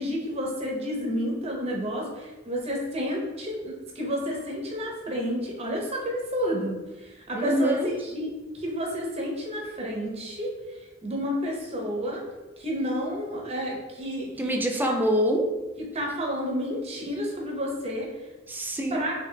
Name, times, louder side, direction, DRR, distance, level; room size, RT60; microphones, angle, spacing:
voice 1, 0.0-6.8 7.0-10.5 11.0-12.2 12.6-14.9 15.8-18.1 18.9-19.1, equal, 30° right, -1 dB, 0.7 m, -30 dB
voice 2, 7.4-7.9 14.4-15.5 16.7-16.8 18.5-19.1, equal, 10° right, 3 dB, 0.3 m, -25 dB
3.8 x 3.4 x 2.2 m, 1.1 s
head